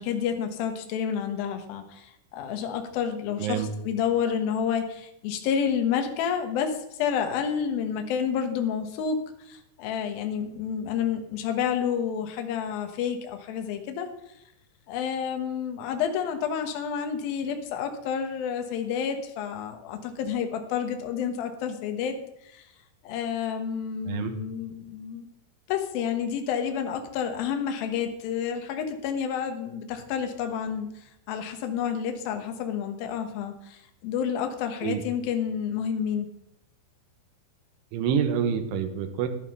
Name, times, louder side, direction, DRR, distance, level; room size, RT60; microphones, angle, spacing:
voice 1, 0.0-2.1 2.3-6.7 7.0-9.2 9.5-14.1 14.9-22.2 22.5-22.6 23.0-25.3 25.7-30.9 31.3-36.3, left 7 dB, 75° left, 6 dB, 2.2 m, -29 dB
voice 2, 3.4-3.7 24.0-24.4 34.8-35.0 37.9-39.3, right 8 dB, 75° right, 7 dB, 3.3 m, -27 dB
11.0 x 9.9 x 5.4 m, 0.78 s
omnidirectional pair, 5.8 m